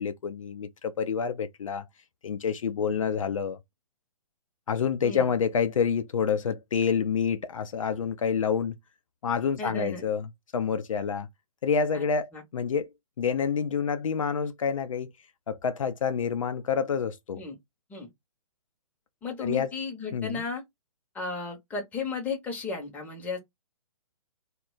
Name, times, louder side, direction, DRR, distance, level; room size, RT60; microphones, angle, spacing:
voice 1, 0.0-1.8 2.2-3.6 4.7-8.8 9.2-11.3 11.6-12.9 13.2-15.1 15.5-17.4 19.4-19.7 20.1-20.4, left 6 dB, 60° left, 0.4 m, -28 dB
voice 2, 9.6-10.0 11.9-12.0 12.3-12.4 17.3-17.5 17.9-18.1 19.2-20.6 21.1-23.4, left 4 dB, 10° left, 0.7 m, -34 dB
2.1 x 2.0 x 3.7 m
figure-of-eight pair, 130°, 19 cm